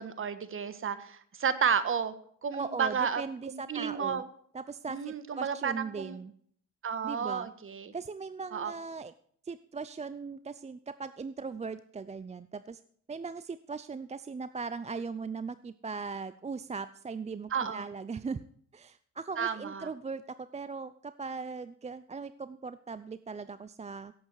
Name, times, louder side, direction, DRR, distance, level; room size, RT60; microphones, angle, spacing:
voice 1, 0.0-2.1 2.4-3.2 3.5-4.2 4.9-6.2 6.8-7.9 8.5-8.7 17.5-17.9 19.4-19.9, right 7 dB, 45° right, 13 dB, 1.4 m, -32 dB
voice 2, 2.5-4.2 4.5-6.3 7.0-7.5 7.9-9.1 9.4-12.8 13.1-18.4 18.7-20.2 20.5-24.1, right 4 dB, 20° right, 14 dB, 0.5 m, -39 dB
17.0 x 8.0 x 4.8 m, 0.62 s
cardioid pair, 90°, 30 cm